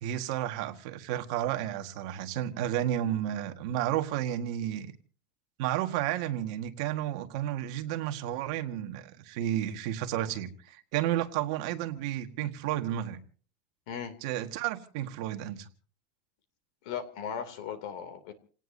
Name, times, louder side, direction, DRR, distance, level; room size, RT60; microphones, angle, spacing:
voice 1, 0.0-4.9 5.6-13.2 14.2-15.7, right 12 dB, 55° right, 1.5 m, -32 dB
voice 2, 16.8-18.3, left 7 dB, 60° left, 2.7 m, -37 dB
29.0 x 18.0 x 2.7 m
supercardioid pair, 175°, 4 cm